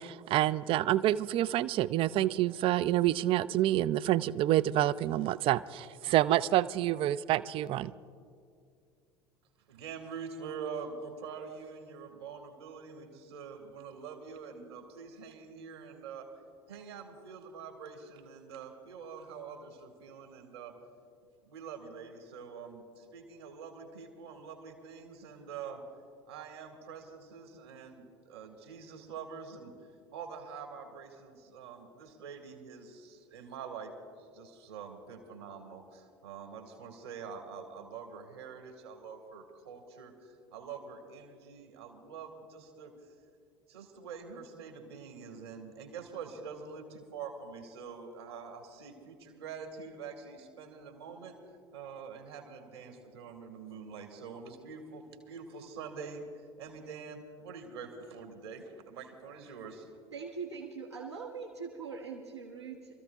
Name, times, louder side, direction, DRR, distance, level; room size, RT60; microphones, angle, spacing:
voice 1, 0.0-7.9, right 14 dB, 40° right, 17 dB, 0.4 m, -28 dB
voice 2, 9.7-16.3 16.7-20.7 21.4-25.8 26.3-29.7 30.1-33.9 34.2-42.9 43.7-51.4 51.7-59.9, right 5 dB, 75° right, 4 dB, 1.8 m, -45 dB
voice 3, 60.1-63.0, right 5 dB, 90° right, -4 dB, 1.1 m, -42 dB
28.0 x 14.0 x 2.3 m, 2.3 s
figure-of-eight pair, 70°, 14 cm